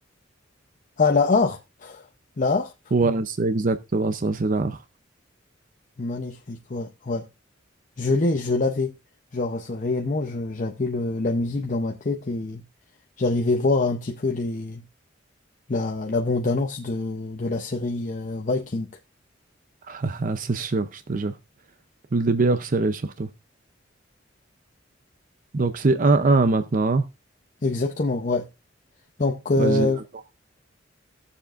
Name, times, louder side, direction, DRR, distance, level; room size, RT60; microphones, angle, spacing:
voice 1, 1.0-2.1 2.4-2.7 6.0-7.3 8.0-8.9 9.3-12.6 13.2-14.8 15.7-18.9 27.6-28.5 29.2-30.0, left 3 dB, 40° left, 0.7 m, -25 dB
voice 2, 2.9-4.8 19.9-21.3 22.1-23.3 25.5-27.0 29.6-29.9, right 3 dB, 45° right, 0.6 m, -22 dB
17.5 x 7.0 x 2.5 m
head